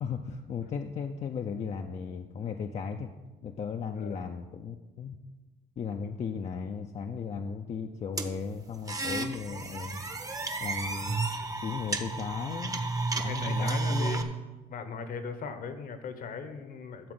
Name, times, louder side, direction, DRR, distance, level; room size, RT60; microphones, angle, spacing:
voice 1, 0.0-3.1 3.4-5.2 5.8-10.0 10.6-11.2 11.6-12.9 13.2-14.4, left 6 dB, 40° left, 4 dB, 0.6 m, -36 dB
voice 2, 4.0-4.3 13.3-14.2 14.7-17.1, left 5 dB, 55° left, 9 dB, 1.2 m, -38 dB
sound 1, 8.2-14.2, right 3 dB, 20° right, 0.9 m, -32 dB
12.0 x 4.3 x 7.9 m, 1.2 s
cardioid pair, 110°, 17 cm